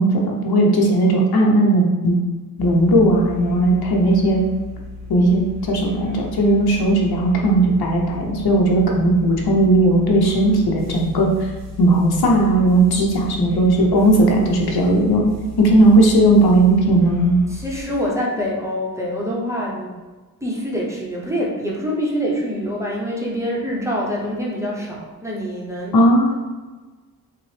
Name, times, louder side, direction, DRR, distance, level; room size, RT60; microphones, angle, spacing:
voice 1, 0.0-2.2 2.6-4.4 5.1-11.3 11.8-15.3 15.6-17.4 25.9-26.3, right 1 dB, 75° left, -1 dB, 0.8 m, -16 dB
sound 1, 2.6-17.8, left 2 dB, 45° right, 0.7 m, -36 dB
voice 2, 17.5-19.9 20.4-26.0, equal, 10° right, -4 dB, 0.7 m, -25 dB
5.8 x 2.0 x 3.2 m, 1.3 s
wide cardioid pair, 160°, 37 cm